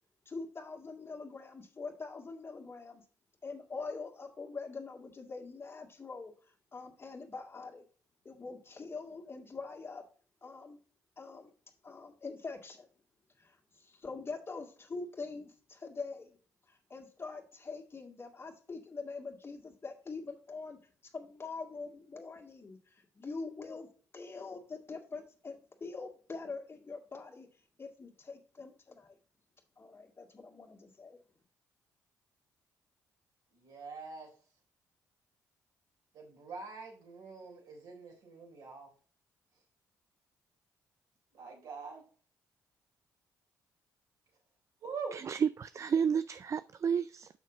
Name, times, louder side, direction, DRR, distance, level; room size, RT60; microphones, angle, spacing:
voice 1, 0.3-3.0 3.4-7.8 8.2-10.0 10.4-10.8 11.2-11.5 11.8-12.9 13.4-16.4 16.7-20.8 21.1-23.9 24.1-27.5 27.8-29.2 29.8-31.2, left 4 dB, 35° left, 1.9 m, -44 dB
voice 2, 33.5-34.3 36.1-38.9 41.3-42.0 44.8-45.1, right 5 dB, 70° right, 3.6 m, -44 dB
voice 3, 45.1-47.3, right 7 dB, 45° right, 0.4 m, -31 dB
6.5 x 6.0 x 4.0 m
hypercardioid pair, 50°, 7 cm